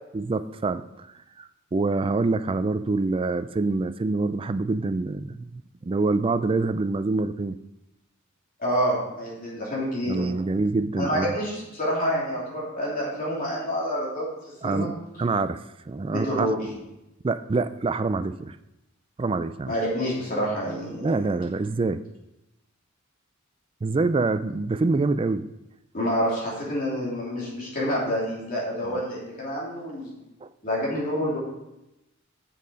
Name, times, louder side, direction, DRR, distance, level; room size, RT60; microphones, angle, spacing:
voice 1, 0.1-1.1 1.4-7.6 10.0-11.3 14.6-14.9 15.2-16.6 17.2-18.6 19.2-19.7 21.0-22.0 23.8-25.5 30.4-30.5, right 3 dB, 25° right, 12 dB, 0.3 m, -26 dB
voice 2, 8.6-10.2 11.0-14.3 14.6-14.9 16.0-16.7 19.7-21.0 25.9-30.1 30.6-31.4, equal, 40° left, -5 dB, 3.2 m, -28 dB
7.4 x 6.6 x 5.2 m, 0.93 s
head